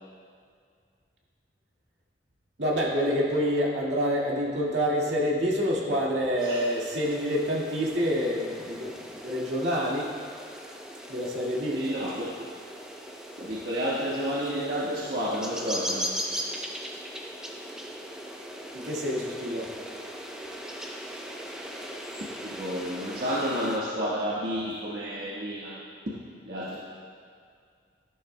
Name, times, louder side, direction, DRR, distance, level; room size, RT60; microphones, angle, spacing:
voice 1, 2.6-10.1 11.1-11.8 18.7-19.7, equal, 75° right, -4 dB, 1.9 m, -27 dB
sound 1, 6.4-23.8, equal, 5° right, 0.6 m, -39 dB
voice 2, 11.7-12.2 13.4-16.1 22.2-26.8, equal, 60° right, -8 dB, 1.4 m, -31 dB
13.5 x 11.5 x 2.2 m, 2.2 s
head